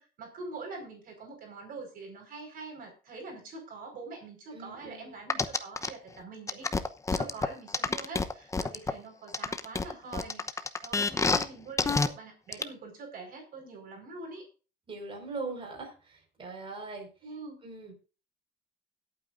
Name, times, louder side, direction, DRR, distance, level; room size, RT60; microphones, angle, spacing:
voice 1, 0.0-6.7 7.1-14.4 17.2-17.6, right 3 dB, 60° right, 2 dB, 5.1 m, -44 dB
voice 2, 4.5-5.2 14.9-17.1 17.6-17.9, right 3 dB, 30° right, 1 dB, 5.1 m, -41 dB
sound 1, 5.3-5.9 6.5-8.9 9.3-11.4 11.8-12.1 12.5-12.6, left 4 dB, 20° left, 0.9 m, -27 dB
20.5 x 8.7 x 2.6 m, 0.35 s
cardioid pair, 110°, 17 cm